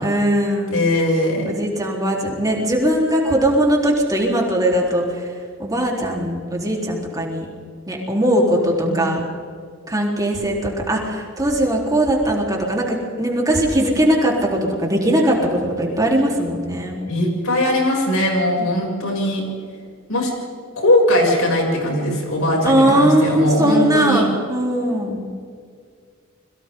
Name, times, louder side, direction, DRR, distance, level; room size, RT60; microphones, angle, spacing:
voice 1, 0.0-0.7 1.5-5.3 5.6-7.5 7.9-9.2 9.9-17.0 22.6-25.3, right 1 dB, 20° right, -2 dB, 4.0 m, -19 dB
voice 2, 0.7-1.6 8.8-9.2 17.1-19.4 20.1-20.3 20.8-24.3, left 1 dB, 85° left, -2 dB, 7.4 m, -20 dB
29.5 x 23.0 x 3.9 m, 2.1 s
head